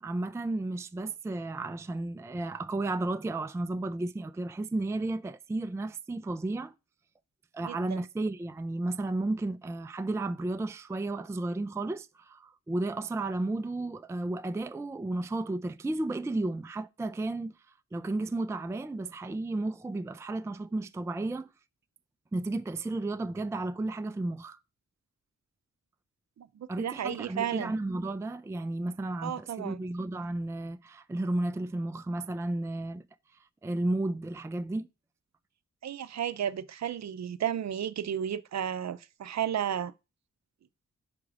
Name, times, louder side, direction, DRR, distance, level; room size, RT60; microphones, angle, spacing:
voice 1, 0.0-6.7 7.5-17.5 17.9-21.5 22.3-24.6 26.7-33.0 33.6-34.9, right 2 dB, 10° right, 0.4 m, -33 dB
voice 2, 7.6-8.0 26.4-27.7 29.2-29.8 35.8-39.9, right 9 dB, 65° right, 0.6 m, -33 dB
5.2 x 4.8 x 6.1 m
cardioid pair, 50°, 29 cm